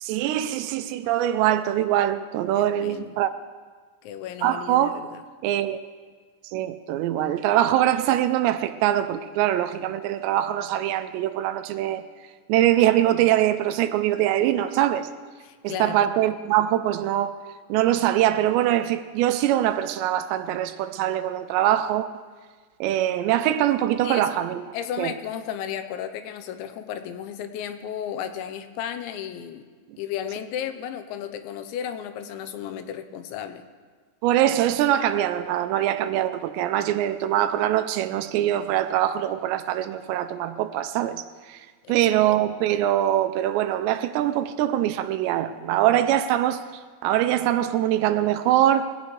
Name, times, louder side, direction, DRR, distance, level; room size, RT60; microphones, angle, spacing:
voice 1, 0.0-3.3 4.4-5.0 5.4-5.8 6.4-12.0 12.5-15.1 15.6-17.3 17.7-22.1 22.8-24.6 25.0-25.1 34.2-41.2 41.5-41.6 41.9-46.6 47.0-48.9, right 12 dB, 80° right, 2.7 m, -23 dB
voice 2, 2.6-3.2 4.0-5.2 15.4-16.1 24.0-24.4 24.7-29.7 30.0-33.6 41.8-42.4, left 9 dB, 85° left, 3.1 m, -34 dB
22.0 x 16.5 x 3.2 m
omnidirectional pair, 5.2 m